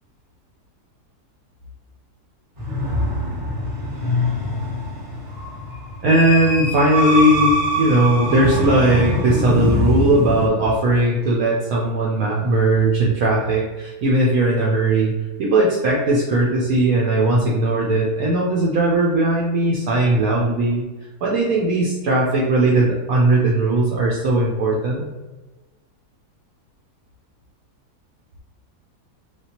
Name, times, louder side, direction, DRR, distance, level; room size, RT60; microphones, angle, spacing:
Drone Dark Ambient Horror, 2.6-10.5, left 1 dB, 30° right, 0.6 m, -23 dB
voice 1, 6.0-15.1 15.4-20.8 21.2-25.1, right 1 dB, 70° right, -3 dB, 1.0 m, -18 dB
3.3 x 2.5 x 2.8 m, 1.2 s
omnidirectional pair, 1.8 m